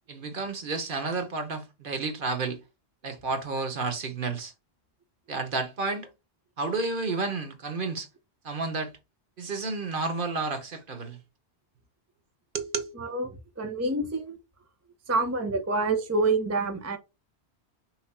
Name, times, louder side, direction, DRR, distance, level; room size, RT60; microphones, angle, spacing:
voice 1, 0.1-2.6 3.0-4.5 5.3-6.1 6.6-8.1 8.4-8.9 9.4-11.2 12.5-12.9, right 3 dB, 55° right, 1.0 m, -31 dB
voice 2, 12.9-14.4 15.1-17.0, right 3 dB, 20° right, 0.5 m, -27 dB
5.7 x 2.1 x 4.2 m
omnidirectional pair, 1.1 m